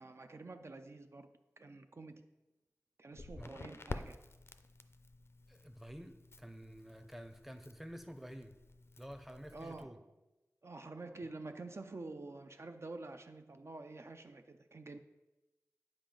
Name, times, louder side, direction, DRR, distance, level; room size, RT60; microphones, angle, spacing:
voice 1, 0.0-2.2 3.0-4.2 9.5-10.0 10.6-15.0, right 3 dB, 50° right, 7 dB, 0.4 m, -48 dB
Crackle, 3.1-9.8, left 2 dB, 45° left, 0.4 m, -50 dB
voice 2, 5.5-8.5 9.0-10.0, equal, 5° right, 7 dB, 0.6 m, -50 dB
8.8 x 4.9 x 3.8 m, 1.0 s
wide cardioid pair, 60°, 6 cm